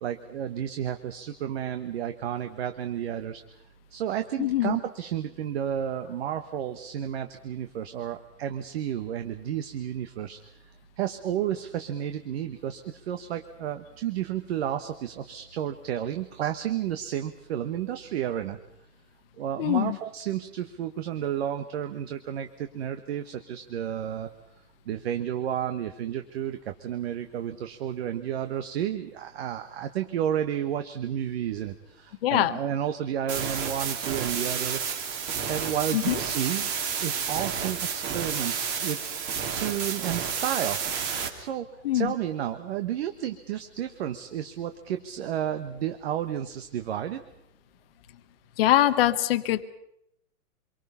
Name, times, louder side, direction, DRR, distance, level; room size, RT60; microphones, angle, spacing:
voice 1, 0.0-3.4 3.9-10.4 11.0-18.6 19.4-24.3 24.8-34.8 35.5-36.7 37.0-39.0 39.5-40.8 41.4-41.7 41.9-47.2, right 10 dB, 40° right, 7 dB, 1.3 m, -31 dB
voice 2, 4.4-4.8 19.6-20.0 32.2-32.5 35.9-36.2 41.8-42.1 48.6-49.6, left 13 dB, 40° left, 10 dB, 1.1 m, -23 dB
sound 1, 33.3-41.3, right 6 dB, 25° right, 2.7 m, -30 dB
26.5 x 23.5 x 5.6 m, 0.78 s
hypercardioid pair, 160°, 46 cm